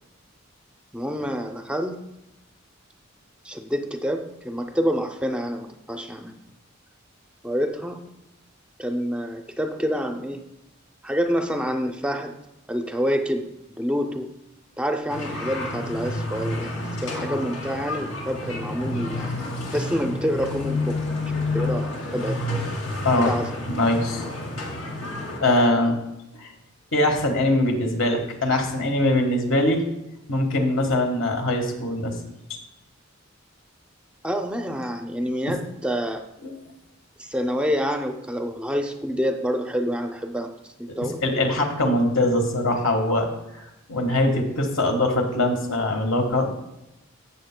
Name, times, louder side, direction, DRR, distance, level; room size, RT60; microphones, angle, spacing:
voice 1, 0.9-2.0 3.4-6.3 7.4-8.0 8.8-10.5 11.0-12.3 12.7-14.4 14.8-16.7 17.0-19.3 19.7-21.0 21.5-22.4 23.2-23.6 34.2-36.2 37.2-41.2, equal, 5° right, 5 dB, 0.4 m, -27 dB
sound 1, 15.1-25.4, left 2 dB, 90° left, 2.6 m, -30 dB
voice 2, 23.7-24.5 25.4-25.9 26.4-26.5 26.9-29.8 30.3-32.2 32.5-32.6 36.4-36.5 41.2-43.3 43.5-46.5, left 1 dB, 70° left, 3 dB, 1.4 m, -22 dB
14.5 x 7.1 x 2.2 m, 0.91 s
head